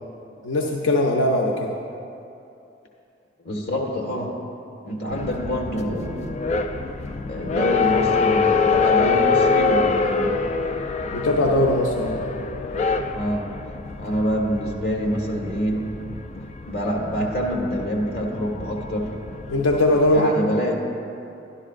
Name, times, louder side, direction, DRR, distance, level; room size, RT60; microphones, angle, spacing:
voice 1, 0.4-1.7 11.1-12.2 19.5-20.5, left 1 dB, 85° left, 0 dB, 0.7 m, -20 dB
voice 2, 3.4-4.4 4.8-6.4 7.3-10.3 13.1-13.5 14.0-15.9 16.6-19.1 20.1-20.8, equal, 50° left, -2 dB, 1.5 m, -26 dB
sound 1, 5.1-20.2, left 4 dB, 35° left, 0.3 m, -25 dB
12.5 x 11.0 x 2.5 m, 2.8 s
head